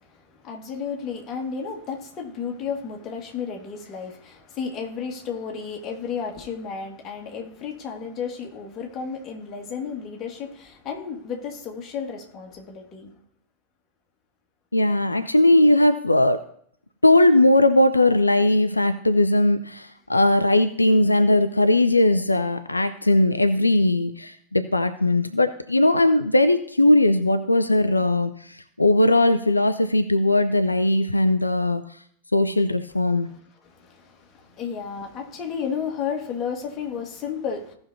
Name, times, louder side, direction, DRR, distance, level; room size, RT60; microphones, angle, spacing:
voice 1, 0.0-13.1 33.2-33.3 33.6-37.7, left 6 dB, 30° left, 1.7 m, -33 dB
voice 2, 14.7-16.4 17.0-31.8 32.3-33.3, left 1 dB, 85° left, 0.4 m, -19 dB
17.0 x 5.7 x 2.7 m
figure-of-eight pair, 90°, 0 cm